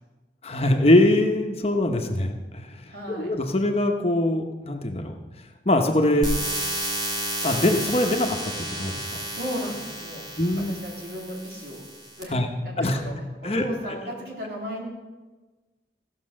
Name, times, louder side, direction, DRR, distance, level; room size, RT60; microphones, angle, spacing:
voice 1, 0.4-5.1 5.6-6.3 7.4-9.0 10.4-10.8 12.3-12.5 12.8-13.0 13.4-14.0, left 1 dB, 35° left, 4 dB, 0.9 m, -23 dB
voice 2, 2.9-3.3 9.3-10.3 10.7-11.8 12.1-13.1 13.4-14.9, equal, 60° right, -2 dB, 3.3 m, -35 dB
sound 1, 6.2-12.2, right 1 dB, 25° right, 2.2 m, -32 dB
15.5 x 6.6 x 6.4 m, 1.2 s
head